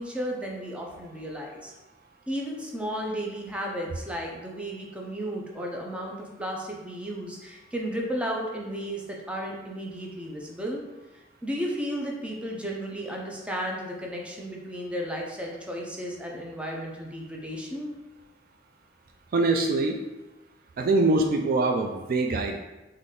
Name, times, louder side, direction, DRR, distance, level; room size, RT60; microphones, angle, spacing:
voice 1, 0.0-1.7 2.3-10.8 11.4-17.9, equal, 5° right, -1 dB, 0.6 m, -34 dB
voice 2, 19.3-20.0 20.8-22.6, right 2 dB, 50° right, 3 dB, 0.3 m, -23 dB
4.0 x 3.2 x 3.6 m, 1.1 s
head